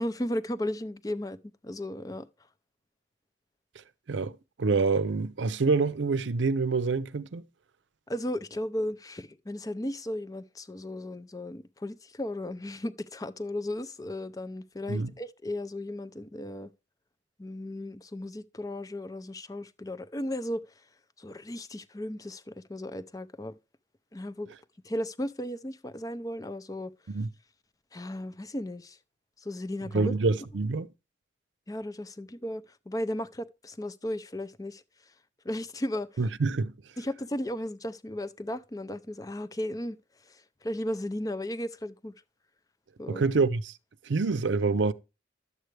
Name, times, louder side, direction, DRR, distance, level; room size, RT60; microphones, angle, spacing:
voice 1, 0.0-1.4 1.6-2.3 8.1-16.7 17.4-20.6 21.2-23.5 24.1-24.5 24.8-26.9 27.9-29.0 29.4-30.1 31.7-34.8 35.4-36.1 37.0-40.0 40.3-42.1 43.0-43.2, left 1 dB, 20° left, 0.5 m, -35 dB
voice 2, 4.1-7.4 14.9-15.1 27.1-27.3 29.9-30.9 36.2-36.7 43.1-43.7 44.1-44.9, right 4 dB, 80° right, 0.6 m, -26 dB
11.0 x 7.8 x 3.3 m
head